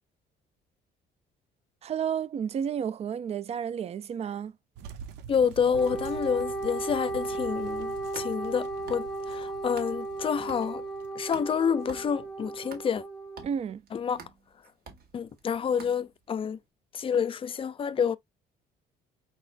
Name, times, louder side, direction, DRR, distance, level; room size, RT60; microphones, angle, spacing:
voice 1, 1.8-4.5 13.4-13.8, right 8 dB, 40° right, 0.4 m, -31 dB
sound 1, 4.8-12.4, right 7 dB, 80° right, 0.8 m, -47 dB
voice 2, 5.3-10.8 11.2-13.0 13.9-14.2 15.1-16.6 16.9-18.2, left 7 dB, 30° left, 0.5 m, -28 dB
Wind instrument woodwind instrument, 5.7-13.4, right 2 dB, ahead, 0.9 m, -35 dB
sound 2, 7.9-10.2 10.5-16.4, right 5 dB, 65° right, 1.8 m, -49 dB
4.6 x 4.1 x 2.5 m
cardioid pair, 110°, 17 cm